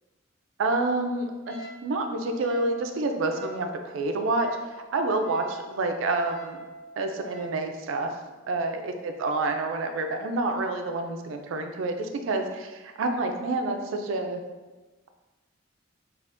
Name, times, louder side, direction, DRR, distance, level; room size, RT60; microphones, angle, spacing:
voice 1, 0.6-4.5 4.9-6.6 7.0-8.1 8.5-14.4, right 2 dB, 85° right, 5 dB, 0.4 m, -28 dB
Wind instrument woodwind instrument, 1.5-7.6, right 3 dB, 55° left, 0.6 m, -44 dB
2.5 x 2.4 x 3.4 m, 1.2 s
head